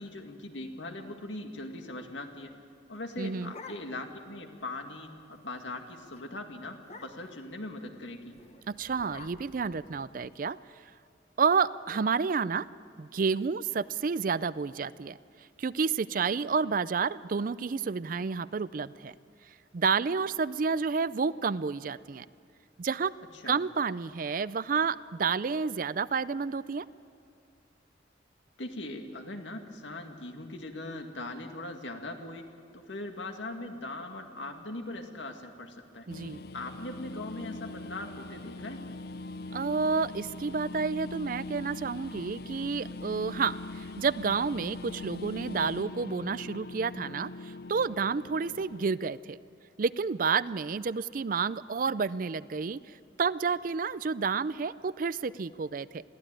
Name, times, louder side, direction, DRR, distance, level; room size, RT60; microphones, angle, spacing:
voice 1, 0.0-2.5 2.9-8.3 23.3-23.6 28.6-32.4 32.7-36.1 36.5-38.8, left 2 dB, 80° left, 4 dB, 2.0 m, -40 dB
sound 1, 2.9-4.2 4.6-4.7 5.0-5.3 5.6-5.8 6.1-6.3 6.8-7.4 8.3-10.4, left 3 dB, 35° left, 1.1 m, -50 dB
voice 2, 3.2-3.5 8.7-10.6 11.4-12.7 13.0-15.2 15.6-19.1 19.7-22.3 22.8-23.1 23.5-26.9 36.1-36.4 39.5-49.4 49.8-56.0, right 5 dB, 50° right, 17 dB, 0.4 m, -30 dB
sound 2, 36.1-48.9, left 2 dB, 55° left, 0.5 m, -42 dB
22.0 x 15.0 x 9.0 m, 2.3 s
head